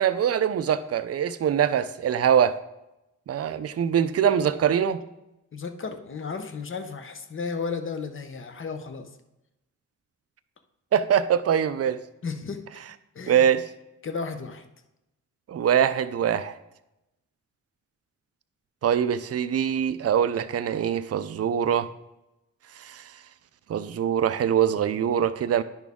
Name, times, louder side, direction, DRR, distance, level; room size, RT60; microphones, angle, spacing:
voice 1, 0.0-2.6 3.3-5.0 10.9-12.0 13.3-13.6 15.5-16.6 18.8-21.9 22.8-23.1 23.7-25.6, right 8 dB, 50° right, 13 dB, 0.4 m, -23 dB
voice 2, 5.5-9.1 12.2-12.8 13.1-13.5 14.0-14.6, left 5 dB, 40° left, 8 dB, 0.7 m, -34 dB
10.5 x 6.1 x 3.5 m, 0.93 s
wide cardioid pair, 175°, 32 cm